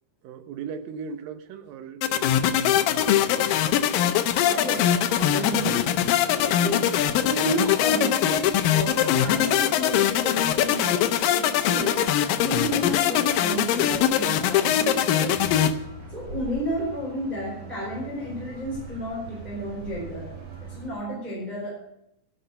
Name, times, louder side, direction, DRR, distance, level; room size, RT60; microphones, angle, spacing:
voice 1, 0.2-3.6 6.4-6.8, right 6 dB, 75° right, 9 dB, 2.8 m, -39 dB
sound 1, 2.0-15.7, left 10 dB, 75° left, 2.5 m, -22 dB
voice 2, 4.4-5.9 6.3-12.1 12.4-15.5 16.1-20.3 20.6-21.7, equal, 10° right, -5 dB, 4.1 m, -32 dB
sound 2, 15.3-20.9, right 3 dB, 55° right, 3.9 m, -41 dB
12.0 x 10.0 x 6.6 m, 0.83 s
omnidirectional pair, 4.3 m